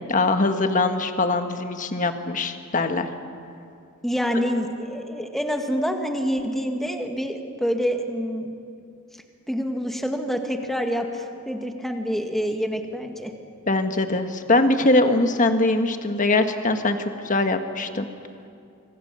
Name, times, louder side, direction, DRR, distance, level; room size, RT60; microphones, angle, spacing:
voice 1, 0.0-3.1 13.7-18.1, left 2 dB, 40° left, 7 dB, 1.5 m, -22 dB
voice 2, 4.0-8.5 9.5-13.3, equal, ahead, 4 dB, 1.9 m, -27 dB
26.0 x 25.0 x 6.9 m, 2.5 s
head